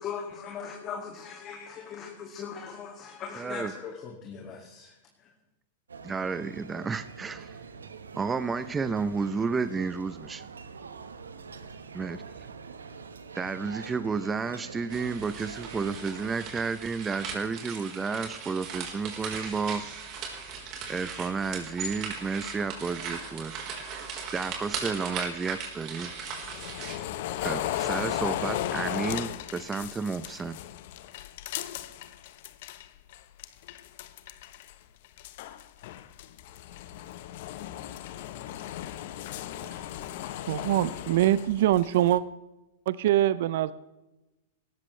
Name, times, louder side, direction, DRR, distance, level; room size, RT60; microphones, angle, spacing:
voice 1, 0.0-5.3, left 6 dB, 35° left, 2 dB, 2.3 m, -40 dB
voice 2, 3.4-3.7 6.0-7.6 8.1-10.5 11.9-12.2 13.3-19.8 20.9-23.5 24.3-26.1 27.4-30.6, right 5 dB, 15° right, 13 dB, 0.7 m, -31 dB
sound 1, 5.9-16.4, right 5 dB, 90° right, 1.2 m, -45 dB
sound 2, 14.9-27.0, right 5 dB, 40° right, 4.2 m, -38 dB
sound 3, 25.8-32.9 33.1-34.7 35.0-42.2, left 12 dB, 60° left, 1.0 m, -36 dB
voice 3, 40.4-42.2 42.9-43.7, right 13 dB, 60° right, 16 dB, 0.6 m, -24 dB
18.0 x 13.5 x 3.3 m, 0.99 s
hypercardioid pair, 110°, 0 cm